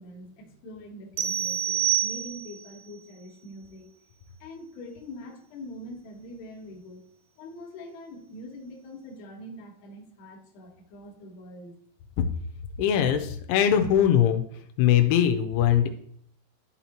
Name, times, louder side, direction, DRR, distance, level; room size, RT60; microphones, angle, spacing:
voice 1, 0.0-3.9 4.4-7.0 7.4-11.8, left 1 dB, 65° left, 0 dB, 2.8 m, -43 dB
sound 1, 1.2-2.7, right 11 dB, 85° right, 2.7 m, -27 dB
voice 2, 12.8-14.4 14.8-15.9, left 10 dB, 85° left, 6 dB, 3.0 m, -21 dB
12.0 x 4.2 x 2.9 m, 0.66 s
omnidirectional pair, 5.3 m